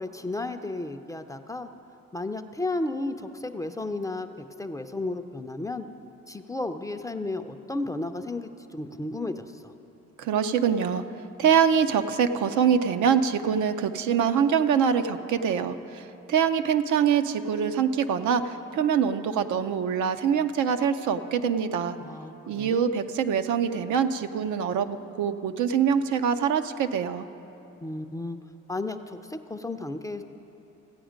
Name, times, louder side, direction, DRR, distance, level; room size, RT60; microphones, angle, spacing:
voice 1, 0.0-1.7 2.1-5.8 6.3-9.7 22.0-22.9 27.8-28.4 28.7-30.2, left 2 dB, 10° left, 7 dB, 0.4 m, -33 dB
voice 2, 10.2-11.0 11.4-22.0 22.5-27.3, right 7 dB, 75° right, 9 dB, 0.6 m, -24 dB
15.0 x 8.6 x 5.1 m, 3.0 s
cardioid pair, 90°, 30 cm